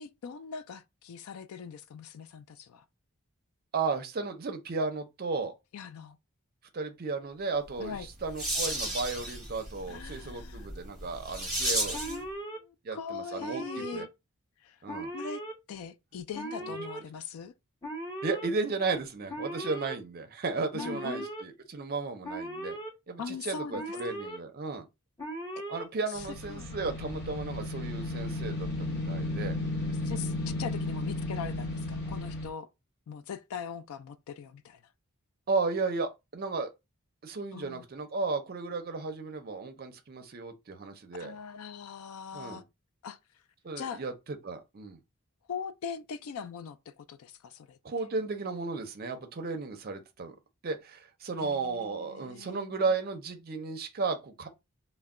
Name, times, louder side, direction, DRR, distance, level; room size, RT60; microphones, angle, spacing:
voice 1, 0.0-2.8 5.7-6.2 7.8-8.1 9.9-10.7 12.1-12.3 12.6-14.1 14.6-14.8 15.1-15.4 15.7-17.5 20.7-21.3 23.2-23.8 25.5-25.7 26.5-26.7 30.0-32.7 33.1-34.8 37.5-37.8 41.2-42.6 43.0-43.2 43.8-44.0 45.5-47.8 51.4-52.8, left 6 dB, 70° left, 0.3 m, -41 dB
voice 2, 3.7-5.5 6.7-12.0 12.8-14.1 14.8-15.1 16.6-16.7 18.2-22.8 23.1-24.9 25.7-29.6 35.5-36.7 37.2-41.3 42.3-42.6 43.6-45.0 47.8-50.3 50.6-54.5, right 4 dB, 40° right, 0.5 m, -34 dB
sound 1, 7.8-12.2, right 1 dB, ahead, 1.0 m, -34 dB
Alarm, 11.9-12.6 13.4-14.1 14.9-15.5 16.3-17.0 17.8-18.5 19.3-20.0 20.8-21.4 22.2-22.9 23.7-24.4 25.2-25.9, right 1 dB, 15° left, 0.7 m, -38 dB
sound 2, 26.1-32.5, left 2 dB, 45° left, 0.8 m, -34 dB
2.2 x 2.1 x 3.6 m
head